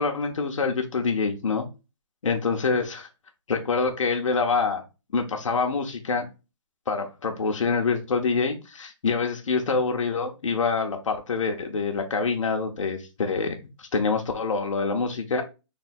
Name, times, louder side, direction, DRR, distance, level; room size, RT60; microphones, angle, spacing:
voice 1, 0.0-1.6 2.2-3.1 3.5-4.8 5.1-6.3 6.9-15.4, left 4 dB, 80° left, 0.8 m, -26 dB
3.4 x 2.2 x 4.2 m
hypercardioid pair, 170°, 16 cm